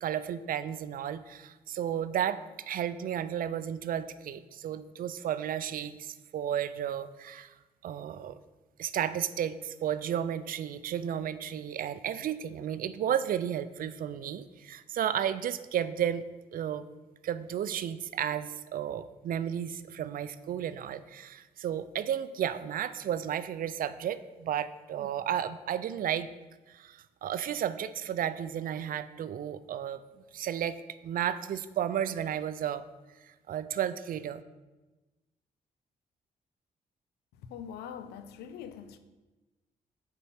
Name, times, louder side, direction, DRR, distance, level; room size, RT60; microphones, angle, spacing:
voice 1, 0.0-7.5 7.8-8.4 8.8-16.2 16.5-16.9 17.2-26.3 26.7-32.8 33.2-34.4, right 9 dB, 60° right, 0.4 m, -33 dB
voice 2, 37.4-39.0, left 8 dB, 90° left, 0.4 m, -43 dB
4.5 x 4.1 x 5.5 m
supercardioid pair, 55°, 16 cm